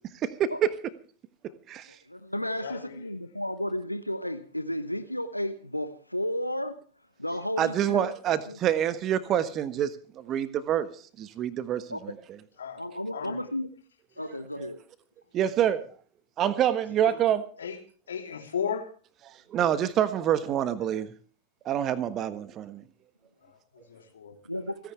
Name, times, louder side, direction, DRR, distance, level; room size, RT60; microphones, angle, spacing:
voice 1, 0.2-0.7 1.7-1.9 7.6-10.9 11.2-12.1 14.6-14.7 15.3-15.8 16.4-17.5 19.5-21.1 21.6-22.8, right 10 dB, 30° right, 1.4 m, -26 dB
voice 2, 1.9-6.8 7.2-8.1 8.5-8.6 11.9-12.0 12.8-13.7 14.2-14.8 24.4-24.7, left 1 dB, 90° left, 1.1 m, -33 dB
voice 3, 2.6-3.1 12.6-12.8 13.1-13.4 17.1-17.2 17.6-17.8 18.1-18.9 23.4-24.3, left 7 dB, 70° left, 3.3 m, -35 dB
29.5 x 10.5 x 3.3 m
figure-of-eight pair, 90°, 0 cm